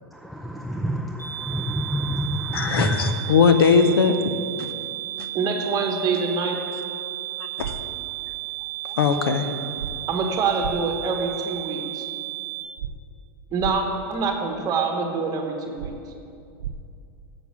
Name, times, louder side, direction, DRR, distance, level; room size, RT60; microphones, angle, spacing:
voice 1, 0.1-3.1, equal, ahead, 2 dB, 0.4 m, -28 dB
sound 1, 1.2-12.6, right 16 dB, 20° left, 2.2 m, -33 dB
voice 2, 2.5-4.1 7.6-7.7 8.8-9.5, left 6 dB, 85° left, 8 dB, 0.7 m, -19 dB
voice 3, 5.3-6.6 10.1-12.1 13.5-15.9, right 4 dB, 30° right, 3 dB, 1.2 m, -25 dB
sound 2, 7.6-7.7 9.8-9.9 10.6-10.7 12.8-12.9 13.6-13.7 15.8-15.9 16.6-16.7, right 10 dB, 80° right, 0.5 m, -31 dB
7.1 x 6.1 x 7.1 m, 2.5 s
hypercardioid pair, 125°, 12 cm